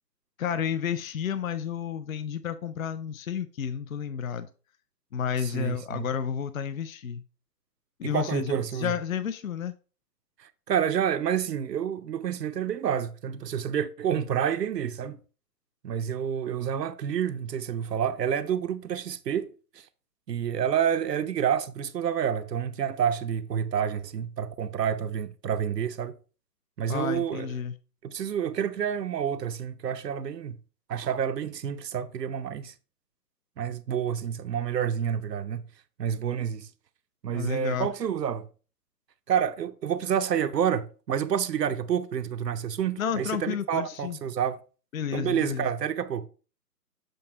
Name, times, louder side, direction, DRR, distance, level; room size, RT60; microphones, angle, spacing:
voice 1, 0.4-4.5 5.1-7.2 8.0-9.8 26.9-27.7 37.3-37.9 43.0-44.2 44.9-45.7, left 8 dB, 55° left, 0.5 m, -31 dB
voice 2, 5.4-6.0 8.0-8.9 10.4-15.2 15.8-19.8 20.3-26.1 26.8-27.5 28.0-30.6 30.9-32.7 33.6-35.6 36.0-36.7 37.2-38.5 39.3-44.6 45.1-46.3, right 8 dB, 80° right, 0.7 m, -29 dB
7.6 x 2.8 x 4.7 m
hypercardioid pair, 160°, 49 cm